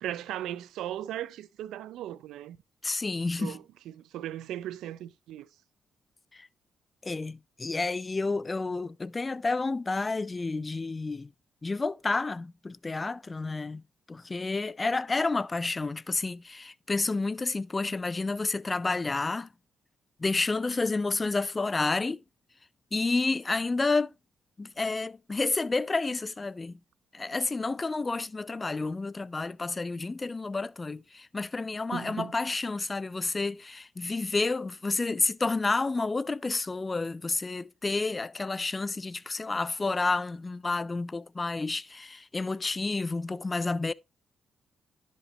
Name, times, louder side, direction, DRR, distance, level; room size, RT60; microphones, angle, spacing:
voice 1, 0.0-2.6 3.4-5.5 31.9-32.3, right 12 dB, 90° right, 0.4 m, -37 dB
voice 2, 2.8-3.6 6.3-6.5 7.0-11.3 11.6-13.8 14.1-19.5 20.2-22.2 22.9-24.1 24.6-26.8 27.1-43.9, left 3 dB, 25° left, 0.3 m, -30 dB
11.0 x 5.2 x 3.0 m
cardioid pair, 80°, 0 cm